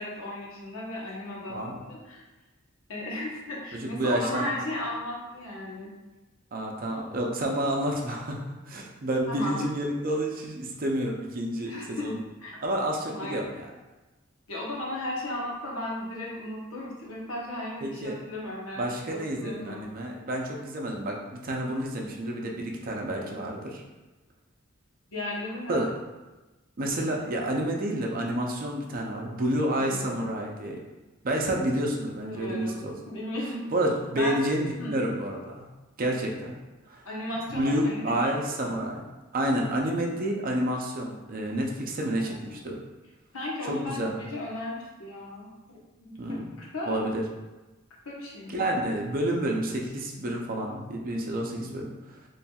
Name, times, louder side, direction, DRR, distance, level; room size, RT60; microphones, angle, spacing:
voice 1, 0.0-2.2 2.9-5.9 9.3-9.6 11.7-12.1 12.4-12.6 13.1-13.4 14.5-19.9 25.1-25.9 29.8-30.1 32.1-33.7 34.2-34.4 34.8-34.9 37.0-38.8 42.1-42.6 43.3-45.5 46.0-47.0 48.0-48.6, left 1 dB, 85° left, -4 dB, 1.0 m, -35 dB
voice 2, 1.5-1.8 3.7-4.5 6.5-12.2 12.6-13.7 17.8-18.1 18.8-23.8 25.7-25.9 26.8-30.8 31.2-32.9 33.7-35.7 36.0-36.6 36.9-37.0 37.5-39.0 39.3-42.8 43.7-44.2 46.2-46.5 46.9-47.2 48.5-51.9, right 1 dB, 45° right, 0 dB, 0.5 m, -29 dB
4.2 x 3.2 x 2.3 m, 1.1 s
head